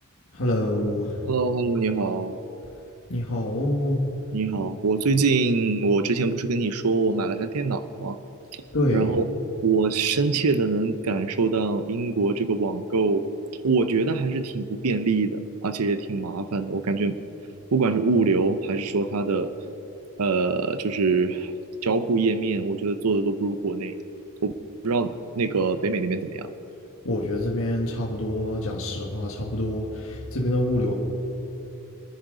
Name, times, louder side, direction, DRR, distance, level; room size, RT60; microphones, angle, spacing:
voice 1, 0.3-1.2 3.1-4.0 8.7-9.1 27.0-30.9, left 1 dB, 65° left, -2 dB, 1.7 m, -26 dB
voice 2, 1.3-2.4 4.3-8.2 8.9-9.2 9.6-13.3 13.6-17.2 17.7-19.5 20.2-21.5 21.8-23.9 24.4-24.5 24.8-26.5, right 4 dB, 85° right, 10 dB, 0.7 m, -24 dB
26.0 x 10.5 x 3.9 m, 3.0 s
head